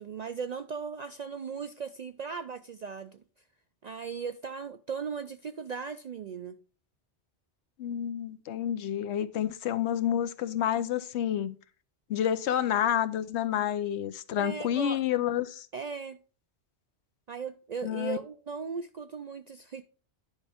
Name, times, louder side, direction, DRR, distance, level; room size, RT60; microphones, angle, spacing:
voice 1, 0.0-3.2 3.8-6.6 14.4-15.0 15.7-16.2 17.3-19.8, right 5 dB, 60° right, 0.4 m, -37 dB
voice 2, 7.8-11.5 12.1-15.7 17.8-18.2, left 10 dB, 75° left, 0.9 m, -29 dB
10.0 x 5.3 x 3.4 m
omnidirectional pair, 1.2 m